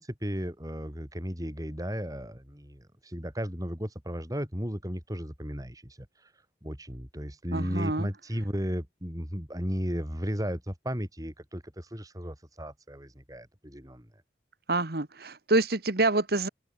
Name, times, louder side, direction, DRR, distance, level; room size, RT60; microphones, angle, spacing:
voice 1, 0.0-6.1 6.6-14.1, equal, 20° right, 6.6 m, -35 dB
voice 2, 7.5-8.1 14.7-16.5, right 2 dB, 60° right, 1.6 m, -26 dB
open air
head